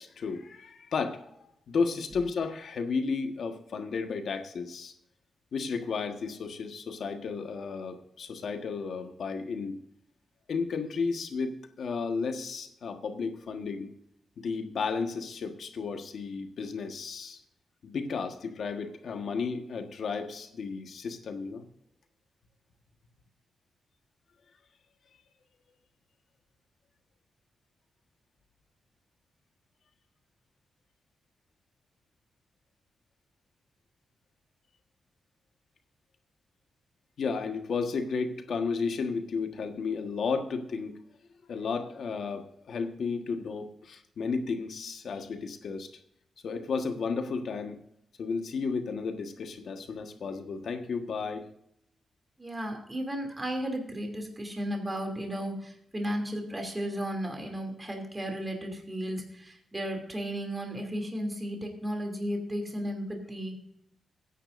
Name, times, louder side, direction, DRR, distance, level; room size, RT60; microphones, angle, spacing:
voice 1, 0.0-4.9 5.5-9.8 10.5-13.9 14.4-17.4 17.8-21.6 37.2-41.0 41.5-45.9 46.4-47.8 48.2-51.5, left 5 dB, 65° left, 5 dB, 1.4 m, -33 dB
voice 2, 52.4-63.6, equal, 15° right, 2 dB, 2.8 m, -34 dB
20.5 x 10.0 x 2.6 m, 0.73 s
wide cardioid pair, 135°, 0 cm